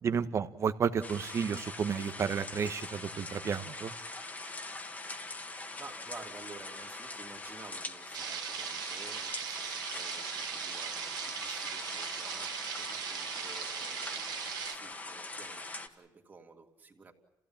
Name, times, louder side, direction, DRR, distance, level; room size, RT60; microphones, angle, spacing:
voice 1, 0.0-4.0, right 6 dB, 45° right, 11 dB, 1.3 m, -32 dB
sound 1, 1.0-15.9, left 2 dB, 20° left, 2.0 m, -43 dB
voice 2, 5.8-14.3 14.7-17.1, right 4 dB, 25° right, 2 dB, 3.1 m, -52 dB
sound 2, 8.1-14.8, right 8 dB, 75° right, 2.2 m, -39 dB
29.0 x 16.0 x 8.9 m, 0.99 s
cardioid pair, 130°, 7 cm